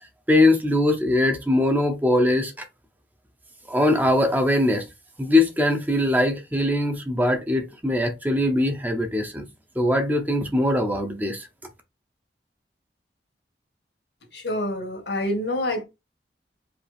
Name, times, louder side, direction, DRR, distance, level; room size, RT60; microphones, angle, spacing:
voice 1, 0.3-2.5 3.7-4.8 5.2-9.5 9.8-11.4, left 1 dB, 10° right, 0.7 m, -21 dB
voice 2, 14.3-15.8, left 1 dB, 85° left, 1.8 m, -27 dB
4.8 x 2.9 x 3.4 m
head